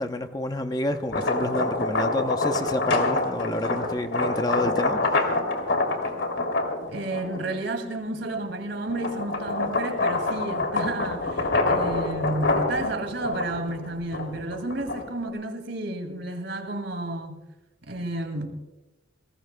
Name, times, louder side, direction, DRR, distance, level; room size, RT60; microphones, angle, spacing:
voice 1, 0.0-5.4, left 1 dB, 20° left, 0.7 m, -29 dB
sound 1, 0.9-7.5 8.1-15.3, left 2 dB, 75° left, 2.8 m, -26 dB
voice 2, 6.9-17.4 17.8-18.6, right 2 dB, 70° right, 2.3 m, -31 dB
29.0 x 19.5 x 2.2 m
head